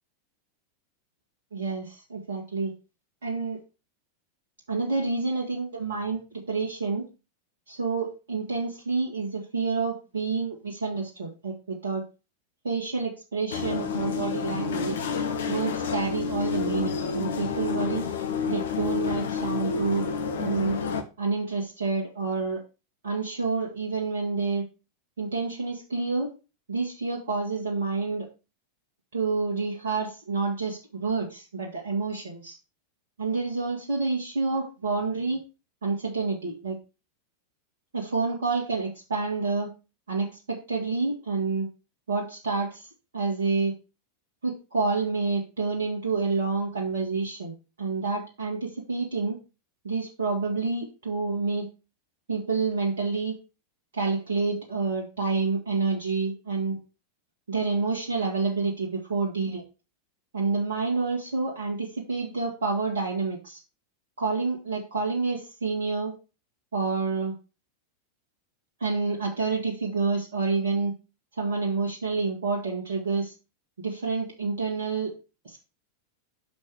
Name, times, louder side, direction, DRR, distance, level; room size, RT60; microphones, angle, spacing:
voice 1, 1.5-2.7 3.2-3.6 4.7-7.0 7.7-12.0 12.6-14.9 15.5-18.1 18.5-20.1 20.4-20.8 21.2-22.6 23.0-24.7 25.2-26.3 26.7-28.3 29.1-32.5 33.2-35.4 35.8-36.7 37.9-39.7 40.1-41.7 42.1-42.9 43.1-43.7 44.4-49.4 49.8-51.7 52.3-53.4 53.9-56.8 57.5-59.6 60.3-63.6 64.2-66.1 66.7-67.3 68.8-70.9 71.4-73.3 73.8-75.1 75.4-75.6, right 4 dB, 65° right, -1 dB, 1.7 m, -28 dB
sound 1, 13.5-21.0, left 6 dB, 60° left, 1.0 m, -29 dB
6.4 x 5.2 x 4.8 m, 0.30 s
figure-of-eight pair, 90°, 0 cm